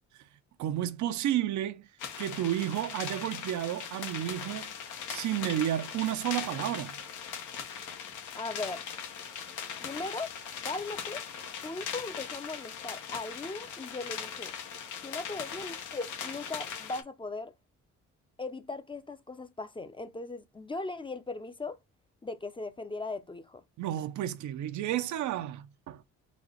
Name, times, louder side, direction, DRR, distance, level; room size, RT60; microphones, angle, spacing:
voice 1, 0.6-1.9 2.2-4.7 5.1-7.0 23.8-26.0, right 12 dB, 75° right, 0.6 m, -31 dB
sound 1, 2.0-17.0, left 7 dB, 85° left, 0.9 m, -40 dB
voice 2, 8.4-8.9 9.8-10.3 10.6-11.2 11.6-14.5 15.0-17.5 18.4-21.8 22.2-23.6, left 3 dB, 15° left, 0.5 m, -38 dB
4.1 x 2.3 x 4.4 m
cardioid pair, 90°, 30 cm